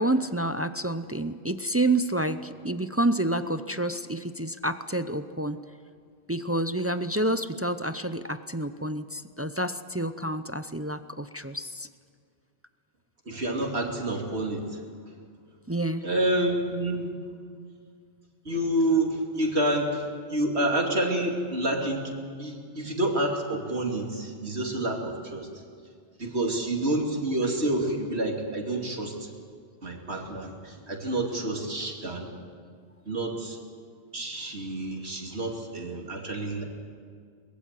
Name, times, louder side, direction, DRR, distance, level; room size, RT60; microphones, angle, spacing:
voice 1, 0.0-5.6 6.3-11.9 15.7-16.0, right 1 dB, 20° right, 11 dB, 0.4 m, -28 dB
voice 2, 13.2-15.1 16.0-17.1 18.4-25.6 26.2-29.3 29.8-32.3 33.0-33.6 34.1-36.6, right 1 dB, 70° right, 1 dB, 2.9 m, -28 dB
23.5 x 20.5 x 7.5 m, 2.1 s
omnidirectional pair, 1.1 m